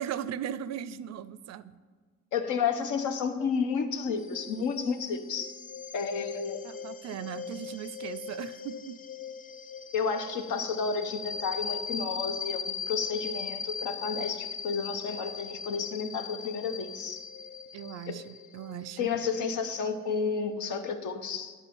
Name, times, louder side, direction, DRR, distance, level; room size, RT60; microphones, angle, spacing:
voice 1, 0.0-1.7 6.6-9.0 17.7-19.1, right 10 dB, 60° right, 16 dB, 0.4 m, -38 dB
voice 2, 2.3-5.5 5.9-6.6 9.9-17.2 18.1-18.2 19.0-21.5, left 5 dB, 80° left, 7 dB, 0.9 m, -31 dB
sound 1, 4.2-20.5, left 6 dB, 30° left, 0.4 m, -40 dB
9.9 x 4.2 x 7.0 m, 1.5 s
cardioid pair, 90°, 30 cm